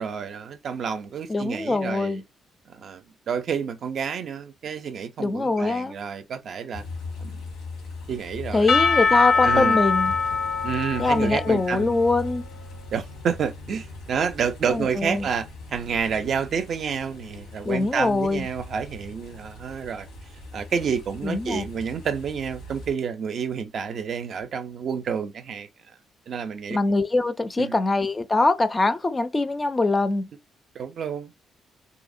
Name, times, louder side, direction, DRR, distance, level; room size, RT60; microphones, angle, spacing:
voice 1, 0.0-2.2 2.7-6.8 7.2-7.5 8.1-8.7 9.1-9.8 10.6-12.0 12.9-20.1 20.5-25.7 26.3-26.8 27.6-27.8 30.7-31.3, right 6 dB, 60° right, 0.4 m, -29 dB
voice 2, 1.3-2.2 5.2-5.9 8.5-10.1 11.0-12.4 14.7-15.3 17.6-18.5 21.2-21.6 26.7-30.3, left 3 dB, 25° left, 0.3 m, -23 dB
sound 1, 6.7-22.9, left 2 dB, 90° left, 1.0 m, -40 dB
Percussion / Church bell, 8.7-12.6, left 4 dB, 70° left, 0.6 m, -23 dB
2.7 x 2.0 x 2.5 m
cardioid pair, 90°, 0 cm